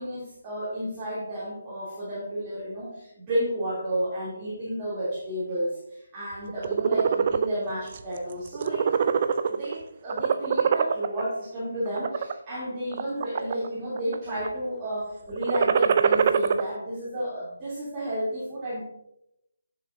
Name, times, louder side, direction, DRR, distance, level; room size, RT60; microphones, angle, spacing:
voice 1, 0.0-9.0 9.5-18.8, right 1 dB, 20° right, -10 dB, 2.9 m, -31 dB
sound 1, 6.5-7.5 7.9-8.2 8.5-9.7 10.1-11.2 11.8-12.3 12.9-13.7 14.0-14.5 15.3-16.6, right 7 dB, 40° right, 0.5 m, -23 dB
11.0 x 6.6 x 2.6 m, 0.81 s
figure-of-eight pair, 150°, 0 cm